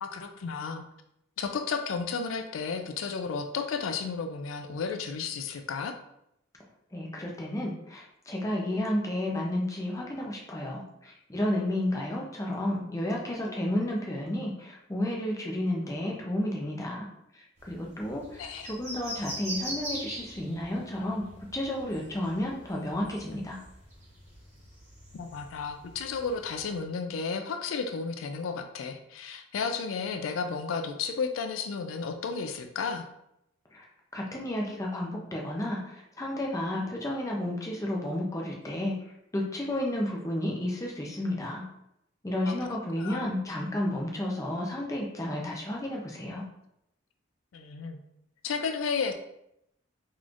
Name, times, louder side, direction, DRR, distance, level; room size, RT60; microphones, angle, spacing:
voice 1, 0.0-0.9 1.4-6.0 13.1-13.7 18.3-18.7 25.1-33.1 42.5-43.2 47.5-48.0 48.4-49.1, left 5 dB, 85° left, 7 dB, 0.4 m, -33 dB
voice 2, 6.9-17.1 17.7-21.3 21.5-23.6 33.7-33.8 34.1-38.9 39.3-41.6 42.2-46.4, left 1 dB, 15° left, -1 dB, 0.6 m, -32 dB
sound 1, 17.6-26.8, right 1 dB, 35° right, 1.3 m, -42 dB
3.9 x 3.1 x 2.5 m, 0.79 s
head